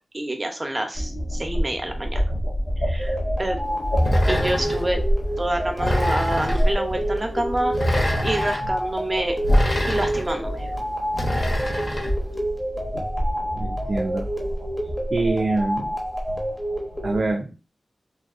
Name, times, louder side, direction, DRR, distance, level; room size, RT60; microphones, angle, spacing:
voice 1, 0.1-2.2 2.8-3.6 4.3-5.0 5.4-9.3 9.9-10.7, right 1 dB, 30° right, 4 dB, 0.7 m, -27 dB
sound 1, 0.9-17.3, equal, 75° left, 1.3 m, -28 dB
sound 2, 3.0-17.2, equal, 30° left, 1.0 m, -29 dB
sound 3, 4.0-4.9 5.8-6.7 7.7-8.6 9.4-10.3 11.1-12.1, equal, 50° left, 1.2 m, -25 dB
voice 2, 13.5-14.3 15.1-16.0 17.0-17.6, right 2 dB, 60° right, 3 dB, 0.4 m, -25 dB
3.0 x 2.6 x 2.5 m, 0.32 s
cardioid pair, 55°, 0 cm